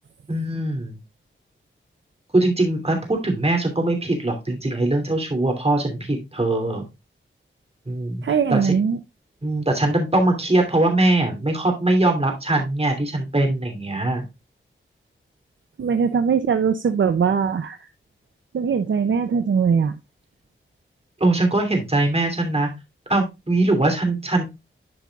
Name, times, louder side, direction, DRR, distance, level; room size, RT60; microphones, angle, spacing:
voice 1, 0.3-1.0 2.3-6.8 7.9-8.8 9.4-14.2 21.2-22.7 23.1-24.4, right 2 dB, 30° right, 3 dB, 2.8 m, -21 dB
voice 2, 8.2-9.0 15.8-17.8 18.5-20.0, right 6 dB, 65° right, 10 dB, 0.6 m, -21 dB
12.0 x 5.3 x 2.3 m, 0.23 s
wide cardioid pair, 80°, 21 cm